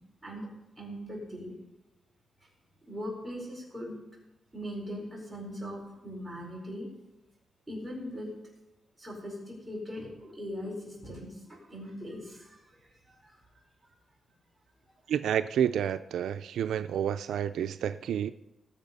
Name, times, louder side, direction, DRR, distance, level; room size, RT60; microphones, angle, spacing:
voice 1, 0.8-1.5 2.8-4.0 4.5-6.9 7.7-8.3 9.0-12.6 13.1-13.4, equal, ahead, -5 dB, 5.0 m, -40 dB
voice 2, 15.1-18.3, right 9 dB, 80° right, 11 dB, 0.4 m, -29 dB
18.5 x 7.2 x 5.5 m, 0.98 s
wide cardioid pair, 165°, 0 cm